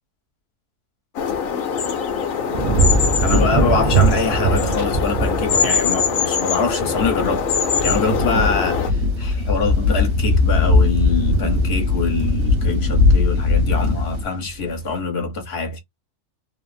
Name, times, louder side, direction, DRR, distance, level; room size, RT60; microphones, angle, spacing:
sound 1, 1.1-8.9, left 6 dB, 85° left, 1.1 m, -23 dB
sound 2, 2.5-13.8 14.2-14.7, right 3 dB, 50° right, 0.7 m, -24 dB
voice 1, 3.2-7.5 7.8-15.8, left 4 dB, 50° left, 1.2 m, -24 dB
sound 3, 8.0-14.2, left 3 dB, 85° right, 1.5 m, -19 dB
3.3 x 2.0 x 2.5 m
omnidirectional pair, 1.4 m